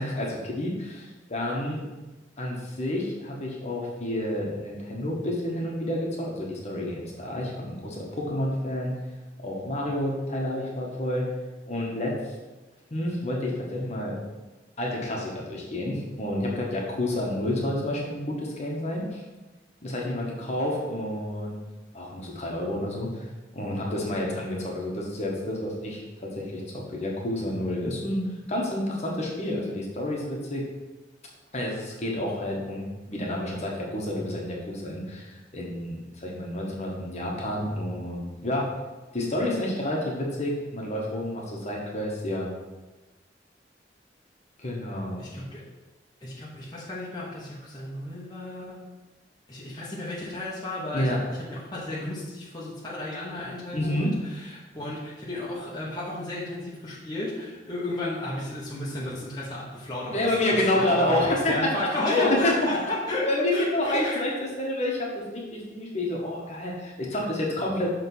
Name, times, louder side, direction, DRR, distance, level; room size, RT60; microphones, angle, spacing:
voice 1, 0.0-1.8 2.4-9.0 9.4-11.3 11.7-12.1 12.9-14.2 14.8-19.2 19.8-21.6 21.9-23.3 23.5-28.2 28.5-30.6 31.5-38.7 39.1-42.5 44.6-45.3 50.9-51.2 53.7-54.1 60.1-61.5 62.1-62.5 63.3-64.3 64.6-68.0, left 1 dB, 40° left, -2 dB, 1.3 m, -29 dB
voice 2, 45.2-45.6 46.2-48.9 49.5-64.2, left 2 dB, 25° left, -7 dB, 1.1 m, -33 dB
6.5 x 3.5 x 5.4 m, 1.1 s
head